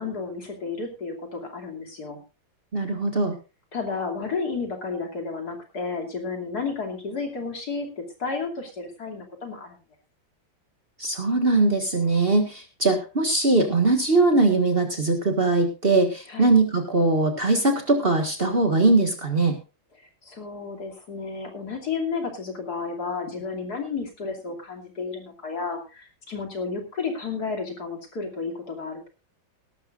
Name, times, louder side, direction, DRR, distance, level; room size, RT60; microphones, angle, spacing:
voice 1, 0.0-2.2 3.7-9.8 16.3-16.5 20.0-29.1, left 4 dB, 55° left, 2 dB, 3.2 m, -32 dB
voice 2, 2.7-3.3 11.0-19.5, right 2 dB, 30° right, 5 dB, 1.8 m, -21 dB
19.0 x 12.0 x 2.5 m, 0.30 s
omnidirectional pair, 2.0 m